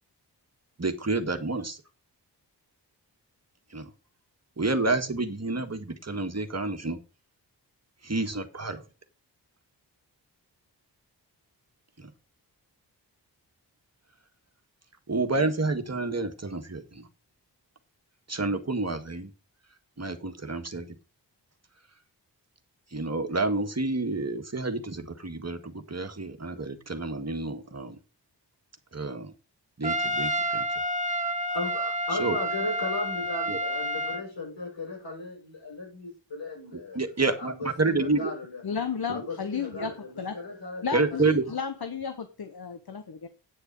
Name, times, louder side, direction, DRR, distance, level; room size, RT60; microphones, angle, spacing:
voice 1, 0.8-1.8 3.7-3.9 4.6-7.0 8.0-8.8 12.0-12.1 15.1-17.1 18.3-19.3 20.0-21.0 22.9-28.0 28.9-29.3 29.8-30.7 32.2-32.4 33.5-33.6 36.7-38.3 39.8-39.9 40.9-41.4, right 3 dB, 35° right, 6 dB, 1.9 m, -29 dB
Trumpet, 29.8-34.3, right 1 dB, 15° right, 1.2 m, -29 dB
voice 2, 31.5-38.6 39.1-41.4, left 2 dB, 85° left, -2 dB, 6.8 m, -36 dB
voice 3, 38.6-40.4 40.8-43.3, left 6 dB, 55° left, 9 dB, 1.2 m, -33 dB
9.4 x 6.8 x 5.4 m, 0.32 s
cardioid pair, 40°, 43 cm